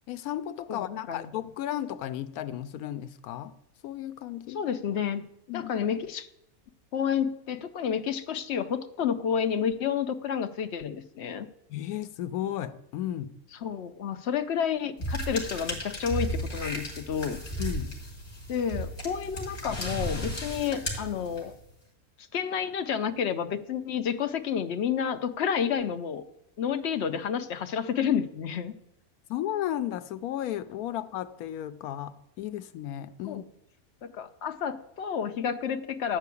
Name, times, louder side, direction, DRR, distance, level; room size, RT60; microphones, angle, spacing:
voice 1, 0.1-3.5 3.8-4.6 5.5-5.7 11.7-13.4 17.6-18.0 29.3-33.5, left 12 dB, 80° left, 1.1 m, -34 dB
voice 2, 0.7-1.3 4.5-5.2 5.5-6.3 6.9-11.5 13.6-17.4 18.5-21.5 22.3-26.2 26.6-28.7 33.2-33.4 34.0-36.2, left 7 dB, 60° left, 0.8 m, -30 dB
sound 1, 15.0-21.6, equal, 25° left, 2.4 m, -34 dB
12.5 x 4.7 x 8.3 m
omnidirectional pair, 1.6 m